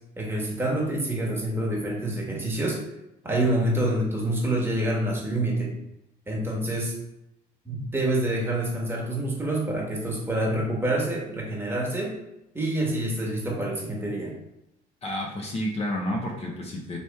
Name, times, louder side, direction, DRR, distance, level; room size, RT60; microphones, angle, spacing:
voice 1, 0.2-2.8 3.2-5.7 6.3-6.9 7.6-12.2 12.5-14.3, right 1 dB, 15° right, -2 dB, 1.3 m, -27 dB
voice 2, 15.0-17.0, left 1 dB, 40° left, 0 dB, 0.8 m, -30 dB
4.1 x 3.1 x 3.5 m, 0.87 s
cardioid pair, 110°, 17 cm